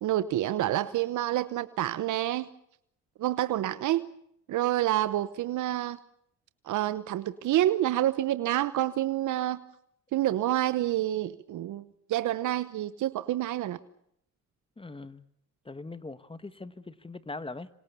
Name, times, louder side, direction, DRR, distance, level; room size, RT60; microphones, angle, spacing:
voice 1, 0.0-2.5 3.2-4.1 4.5-6.0 6.6-9.6 10.1-11.8 12.1-13.8, right 13 dB, 75° right, 14 dB, 1.0 m, -28 dB
voice 2, 14.8-15.3 15.6-17.7, left 3 dB, 20° left, 14 dB, 1.4 m, -41 dB
26.5 x 26.0 x 7.0 m, 0.73 s
cardioid pair, 90°, 30 cm